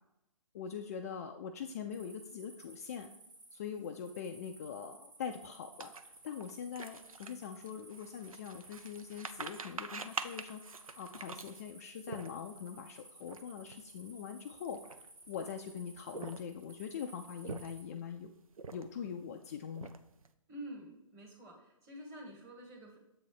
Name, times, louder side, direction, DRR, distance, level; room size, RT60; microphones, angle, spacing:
voice 1, 0.5-3.1 3.5-14.8 15.3-18.3 18.7-19.9, left 7 dB, 30° left, 4 dB, 0.4 m, -43 dB
sound 1, 1.9-17.8, right 2 dB, 65° right, 2.5 m, -57 dB
sound 2, 5.8-12.7 13.2-13.4 13.6-13.9 14.5-15.4 16.0-16.7 17.2-18.0 18.5-19.1 19.5-20.3, right 4 dB, 85° right, 0.6 m, -45 dB
voice 2, 20.5-23.0, right 1 dB, 15° right, -2 dB, 1.8 m, -48 dB
7.6 x 4.1 x 4.8 m, 0.85 s
hypercardioid pair, 145°, 17 cm